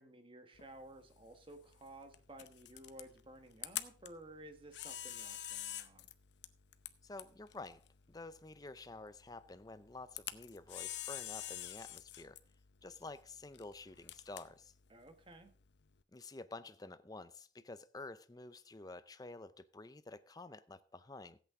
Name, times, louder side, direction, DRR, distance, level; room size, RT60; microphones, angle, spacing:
voice 1, 0.0-6.1 14.9-15.5, right 1 dB, 25° right, 1.3 m, -55 dB
Camera, 0.6-16.0, left 12 dB, 60° left, 0.7 m, -49 dB
voice 2, 7.0-12.4 12.8-14.7 16.1-21.4, left 2 dB, 20° left, 0.5 m, -50 dB
15.5 x 8.3 x 3.6 m
head